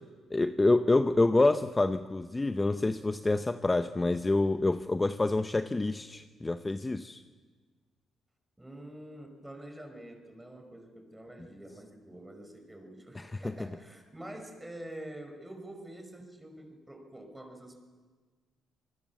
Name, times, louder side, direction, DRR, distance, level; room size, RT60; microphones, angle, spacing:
voice 1, 0.3-7.2, left 2 dB, 20° left, 9 dB, 0.7 m, -27 dB
voice 2, 8.6-17.7, right 1 dB, 10° right, 4 dB, 5.3 m, -46 dB
26.5 x 20.5 x 7.2 m, 1.5 s
cardioid pair, 90°, 0 cm